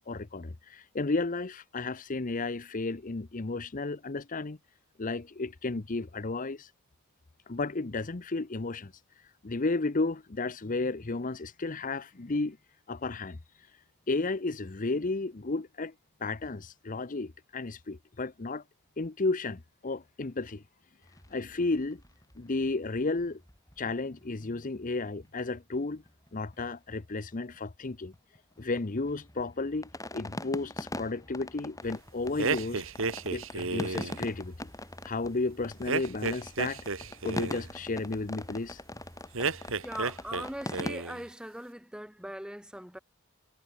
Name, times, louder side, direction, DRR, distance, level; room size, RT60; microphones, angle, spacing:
voice 1, 0.0-4.6 5.0-6.7 7.5-12.6 12.9-13.7 14.1-15.9 16.2-18.6 19.0-20.6 21.3-22.0 22.4-23.4 23.8-26.0 26.3-28.1 28.6-32.8 33.3-34.7 35.0-38.8, left 3 dB, 40° left, 0.8 m, -33 dB
sound 1, 21.0-25.5 25.8-25.9 26.1-26.3 26.5-27.6 27.9-40.9, left 1 dB, 15° left, 5.6 m, -42 dB
sound 2, 32.4-34.2 35.9-37.7 39.3-40.5 40.7-41.2, right 4 dB, 60° right, 2.1 m, -32 dB
voice 2, 39.8-43.0, equal, 5° right, 2.9 m, -40 dB
head